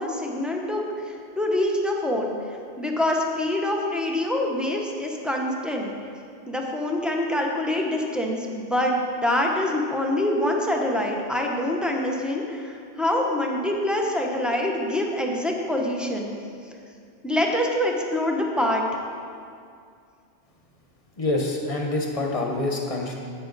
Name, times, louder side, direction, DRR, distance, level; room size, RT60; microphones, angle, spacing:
voice 1, 0.0-2.4 2.8-5.9 6.5-16.3 17.2-18.8, left 1 dB, ahead, -1 dB, 0.7 m, -25 dB
voice 2, 21.2-23.1, left 2 dB, 30° left, 1 dB, 1.0 m, -26 dB
10.5 x 7.7 x 4.0 m, 2.3 s
omnidirectional pair, 1.2 m